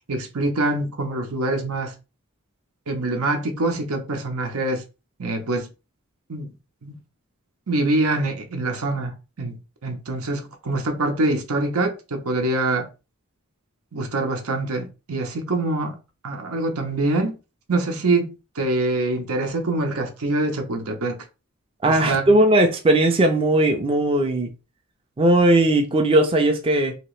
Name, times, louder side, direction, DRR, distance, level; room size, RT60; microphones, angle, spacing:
voice 1, 0.1-1.9 2.9-4.8 5.2-5.7 6.3-6.5 6.8-7.0 7.7-9.6 9.8-12.9 13.9-16.0 16.2-17.3 17.7-21.2 21.9-22.3, right 2 dB, 85° right, 0.8 m, -25 dB
voice 2, 21.8-24.5 25.2-26.9, right 1 dB, 25° right, 0.4 m, -18 dB
2.9 x 2.9 x 3.1 m
head